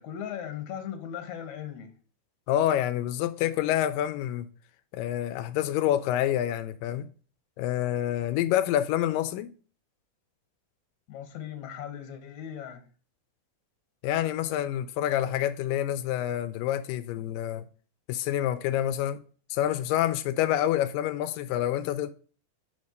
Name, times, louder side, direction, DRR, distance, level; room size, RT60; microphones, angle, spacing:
voice 1, 0.0-1.9 11.1-12.8, left 9 dB, 60° left, 2.2 m, -38 dB
voice 2, 2.5-4.5 4.9-7.1 7.6-9.5 14.0-17.6 18.1-19.2 19.5-22.1, left 12 dB, 80° left, 2.0 m, -27 dB
5.7 x 5.3 x 6.5 m
omnidirectional pair, 4.2 m